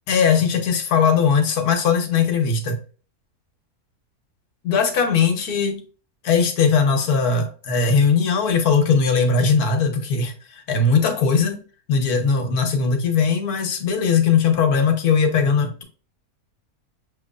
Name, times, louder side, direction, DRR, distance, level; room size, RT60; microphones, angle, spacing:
voice 1, 0.1-2.8 4.6-5.8 6.2-11.6 11.9-15.8, left 5 dB, 90° left, 1.4 m, -19 dB
6.3 x 3.0 x 2.4 m
omnidirectional pair, 1.6 m